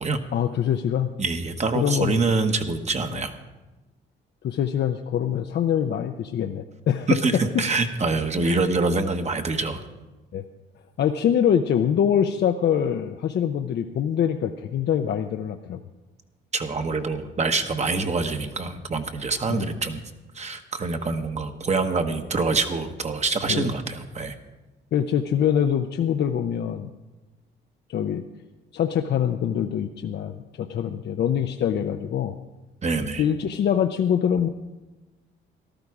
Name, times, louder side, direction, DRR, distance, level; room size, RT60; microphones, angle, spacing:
voice 1, 0.3-1.1 1.7-2.2 4.4-7.1 8.4-8.6 10.3-10.4 11.0-15.8 19.5-19.7 23.5-23.7 24.9-26.9 27.9-28.2 28.7-32.4 33.0-34.5, left 9 dB, 60° left, 6 dB, 0.6 m, -24 dB
voice 2, 1.2-3.4 7.1-9.8 16.5-20.0 20.3-24.4 32.8-33.2, right 3 dB, 35° right, 6 dB, 1.1 m, -25 dB
14.0 x 12.0 x 4.8 m, 1.1 s
cardioid pair, 90°, 20 cm